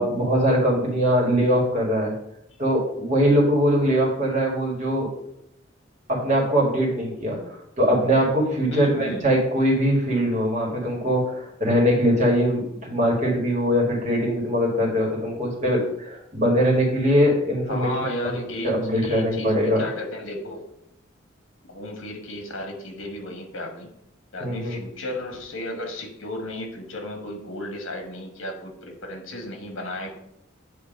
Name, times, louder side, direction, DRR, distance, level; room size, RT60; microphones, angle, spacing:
voice 1, 0.0-2.1 2.6-5.1 6.1-19.8 24.4-24.8, equal, 35° right, -2 dB, 1.9 m, -22 dB
voice 2, 8.7-9.3 17.7-20.6 21.6-23.9 24.3-30.1, left 1 dB, 75° left, 3 dB, 1.4 m, -34 dB
7.7 x 3.0 x 5.2 m, 0.74 s
head